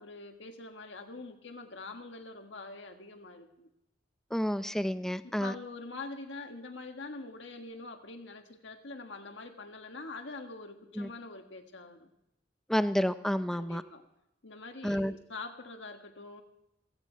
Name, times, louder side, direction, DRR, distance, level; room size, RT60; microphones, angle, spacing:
voice 1, 0.0-3.7 5.2-12.1 13.5-14.0 14.4-16.4, left 3 dB, 85° left, 1.6 m, -44 dB
voice 2, 4.3-5.5 11.0-11.1 12.7-13.8 14.8-15.1, equal, 5° left, 0.4 m, -30 dB
15.5 x 15.5 x 4.5 m
head